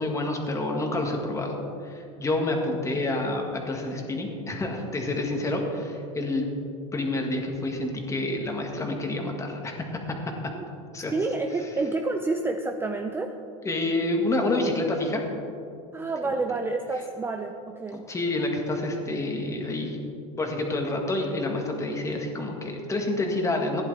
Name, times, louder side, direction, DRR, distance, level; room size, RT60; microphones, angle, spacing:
voice 1, 0.0-6.5 6.9-10.2 10.9-11.1 13.6-15.2 16.2-16.4 17.9-20.0 20.4-23.8, left 2 dB, 20° left, 2 dB, 1.8 m, -28 dB
voice 2, 11.1-13.4 15.9-18.1, right 3 dB, 15° right, 5 dB, 0.5 m, -29 dB
15.5 x 10.5 x 3.4 m, 2.7 s
supercardioid pair, 115°, 17 cm